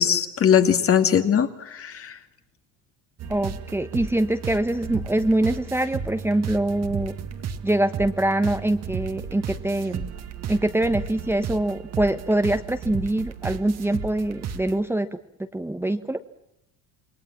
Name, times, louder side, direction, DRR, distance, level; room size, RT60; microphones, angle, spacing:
voice 1, 0.0-2.2, left 8 dB, 40° left, 8 dB, 2.4 m, -20 dB
sound 1, 3.2-14.8, right 7 dB, 45° right, 2.1 m, -34 dB
voice 2, 3.3-7.1 7.6-10.1 10.5-15.1 15.5-16.2, right 1 dB, 5° right, 8 dB, 1.2 m, -24 dB
28.0 x 21.5 x 7.3 m, 0.80 s
cardioid pair, 115°, 35 cm